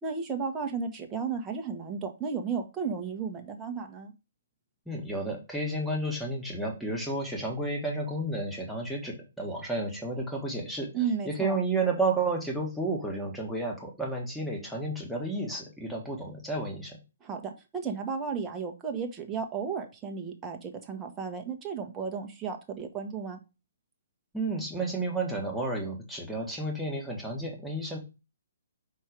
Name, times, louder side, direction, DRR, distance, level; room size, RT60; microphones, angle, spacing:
voice 1, 0.0-4.1 10.9-11.6 17.2-23.4, right 6 dB, 20° right, 3 dB, 1.3 m, -34 dB
voice 2, 4.8-10.9 11.2-17.0 24.3-28.0, right 2 dB, ahead, -1 dB, 1.7 m, -31 dB
5.5 x 4.5 x 5.1 m, 0.29 s
hypercardioid pair, 135°, 0 cm